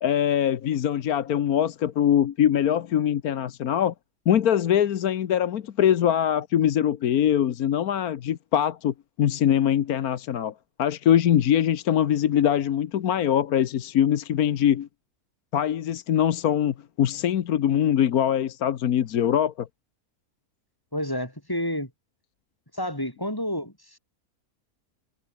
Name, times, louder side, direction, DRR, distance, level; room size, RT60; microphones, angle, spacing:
voice 1, 0.0-3.9 4.3-10.5 10.8-14.9 15.5-19.7, left 10 dB, 75° left, 1.4 m, -23 dB
voice 2, 20.9-21.9 22.7-24.0, left 1 dB, 15° left, 4.7 m, -30 dB
omnidirectional pair, 1.6 m